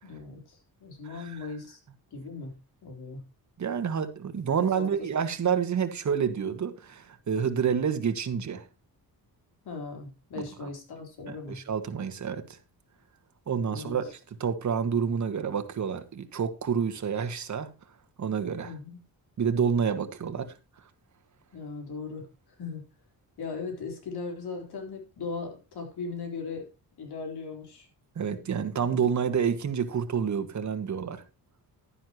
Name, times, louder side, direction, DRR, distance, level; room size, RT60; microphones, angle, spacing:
voice 1, 0.0-1.8 2.1-2.5 2.8-3.2 4.8-5.1 9.6-11.6 13.7-13.9 18.6-19.0 21.5-22.3 22.6-22.8 23.4-26.7 27.0-27.9, left 4 dB, 80° left, 4.0 m, -38 dB
voice 2, 1.0-1.5 3.6-8.7 10.6-10.7 11.3-12.4 13.5-17.7 18.2-18.7 19.4-20.5 28.1-31.2, right 7 dB, 50° right, 1.6 m, -28 dB
11.5 x 10.0 x 3.0 m
cardioid pair, 125°, 38 cm